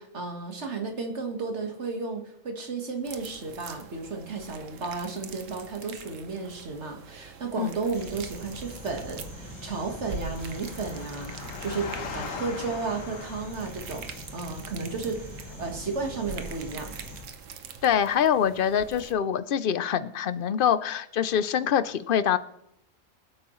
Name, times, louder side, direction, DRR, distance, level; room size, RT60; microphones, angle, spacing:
voice 1, 0.0-16.9, right 4 dB, 65° right, 4 dB, 1.8 m, -33 dB
sound 1, 3.0-19.1, right 6 dB, 80° right, 1.2 m, -44 dB
sound 2, 7.9-17.2, left 1 dB, 15° left, 4.7 m, -43 dB
Engine, 8.5-14.1, left 4 dB, 85° left, 1.5 m, -41 dB
voice 2, 17.8-22.4, left 8 dB, 55° left, 14 dB, 0.6 m, -24 dB
24.0 x 8.4 x 3.1 m, 0.79 s
omnidirectional pair, 1.3 m